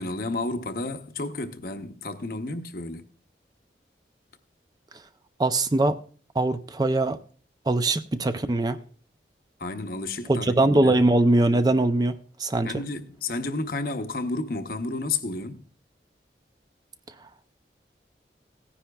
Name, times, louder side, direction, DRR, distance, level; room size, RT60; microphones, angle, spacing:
voice 1, 0.0-3.1 9.6-10.5 10.8-11.0 12.6-15.6, left 3 dB, 55° left, 0.8 m, -31 dB
voice 2, 5.4-6.0 6.3-7.2 7.7-8.8 10.3-12.1 12.4-12.7, right 2 dB, 20° right, 0.4 m, -21 dB
17.5 x 9.9 x 2.3 m
head